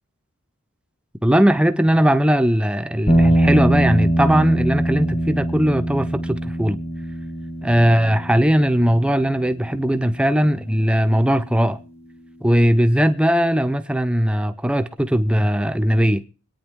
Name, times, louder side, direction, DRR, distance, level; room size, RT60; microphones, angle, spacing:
voice 1, 1.2-6.8 7.6-11.8 12.4-16.2, equal, 5° right, 0.7 m, -19 dB
sound 1, 3.1-11.4, right 1 dB, 30° left, 1.6 m, -23 dB
24.0 x 9.2 x 3.7 m
head